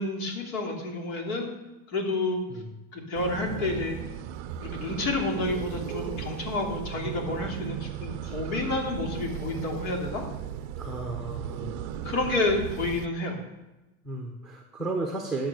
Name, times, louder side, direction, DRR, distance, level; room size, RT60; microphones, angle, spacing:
voice 1, 0.0-1.5 1.9-2.4 2.9-4.0 4.6-10.2 12.0-13.4, left 2 dB, 70° left, 1 dB, 3.0 m, -29 dB
sound 1, 3.1-13.1, right 10 dB, 40° right, 0.5 m, -36 dB
voice 2, 10.8-11.9 14.0-15.5, right 2 dB, ahead, 2 dB, 0.7 m, -34 dB
11.0 x 7.1 x 6.4 m, 1.1 s
supercardioid pair, 155°, 42 cm